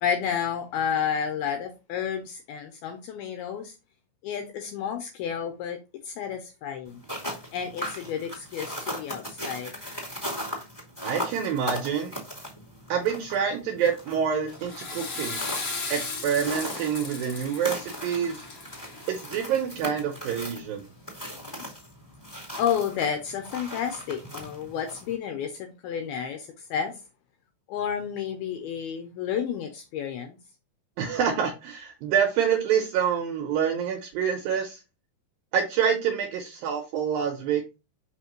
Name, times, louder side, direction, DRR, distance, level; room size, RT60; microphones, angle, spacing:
voice 1, 0.0-3.7 4.2-5.8 6.0-7.0 7.5-9.7 21.6-21.7 22.6-27.0 27.7-30.4, left 8 dB, 80° left, 6 dB, 2.3 m, -31 dB
sound 1, 6.9-25.1, equal, 10° left, 1.3 m, -38 dB
voice 2, 11.0-12.1 12.9-15.4 15.9-18.4 19.1-20.8 31.0-34.8 35.5-37.6, right 7 dB, 75° right, 3 dB, 2.1 m, -27 dB
Water / Toilet flush, 14.5-19.7, left 4 dB, 45° left, 2.6 m, -36 dB
5.8 x 5.7 x 3.0 m, 0.28 s
omnidirectional pair, 5.1 m